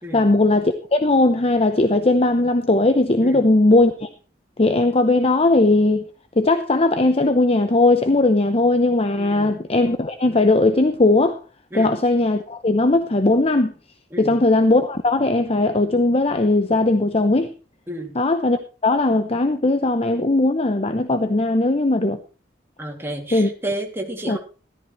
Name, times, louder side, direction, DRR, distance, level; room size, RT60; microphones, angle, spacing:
voice 1, 0.1-4.1 4.6-6.0 6.4-11.4 11.7-13.7 14.2-17.5 18.1-22.2 23.3-23.5 24.3-24.4, left 2 dB, 35° left, 0.8 m, -18 dB
voice 2, 9.2-9.5 11.7-11.9 14.1-14.4 17.9-18.2 22.8-24.4, right 1 dB, 15° right, 2.5 m, -31 dB
14.0 x 13.5 x 3.1 m
head